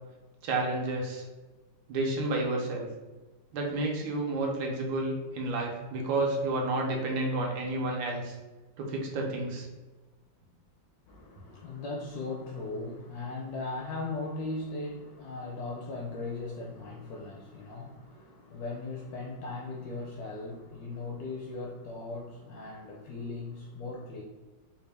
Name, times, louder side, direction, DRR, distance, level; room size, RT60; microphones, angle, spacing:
voice 1, 0.4-1.2 1.9-2.9 3.5-8.4 8.8-9.7, right 2 dB, 85° right, 0 dB, 1.5 m, -30 dB
voice 2, 11.1-24.2, left 3 dB, 75° left, -1 dB, 0.9 m, -38 dB
4.1 x 2.3 x 3.3 m, 1.2 s
omnidirectional pair, 2.1 m